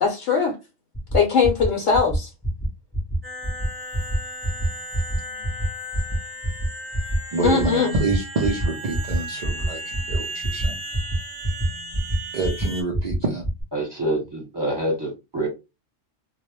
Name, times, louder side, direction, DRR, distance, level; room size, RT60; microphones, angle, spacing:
voice 1, 0.0-0.6 1.1-2.3 7.4-7.9, left 6 dB, 65° left, 0.9 m, -20 dB
sound 1, 0.9-1.2 1.4-1.7 1.9-2.2 2.4-2.7 2.9-3.2 3.4-3.7 3.9-4.2 4.4-4.7 4.9-5.2 5.4-5.6 5.9-6.2 6.4-6.7 6.9-7.2 7.4-7.7 7.9-8.2 8.4-8.7 8.9-9.2 9.4-9.7 9.9-10.2 10.4-10.7 10.9-11.2 11.4-11.7 11.9-12.1 12.4-12.6 12.9-13.2 13.4-13.6, right 2 dB, 10° left, 0.4 m, -25 dB
sound 2, 3.2-12.8, right 1 dB, 35° right, 0.7 m, -35 dB
voice 2, 7.3-10.8 12.3-13.4, right 2 dB, 65° right, 0.4 m, -27 dB
voice 3, 13.7-15.5, right 1 dB, 20° right, 1.0 m, -26 dB
2.3 x 2.0 x 2.9 m
omnidirectional pair, 1.3 m